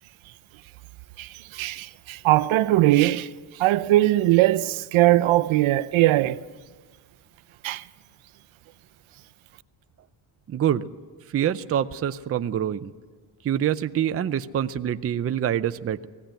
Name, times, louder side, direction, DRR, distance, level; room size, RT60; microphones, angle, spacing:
voice 1, 1.2-3.3 3.6-6.4 7.6-7.8, right 16 dB, 80° right, 0.7 m, -20 dB
voice 2, 10.5-10.9 11.3-12.9 13.4-16.1, right 10 dB, 30° right, 0.5 m, -25 dB
19.0 x 16.0 x 9.1 m
cardioid pair, 145°, 47 cm